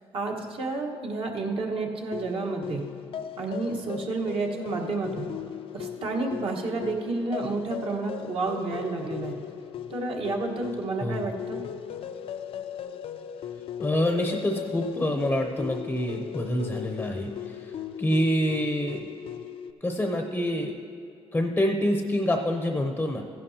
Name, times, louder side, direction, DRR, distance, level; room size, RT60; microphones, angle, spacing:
voice 1, 0.1-2.9 3.4-5.3 5.7-9.4 9.9-11.6, right 3 dB, 60° right, 1 dB, 1.4 m, -30 dB
sound 1, 2.1-19.7, left 9 dB, 60° left, 0.4 m, -38 dB
voice 2, 13.8-17.7 18.0-19.0 19.8-20.7 21.3-23.3, left 1 dB, 10° left, 4 dB, 0.7 m, -26 dB
15.0 x 11.0 x 2.8 m, 2.7 s
cardioid pair, 120°, 11 cm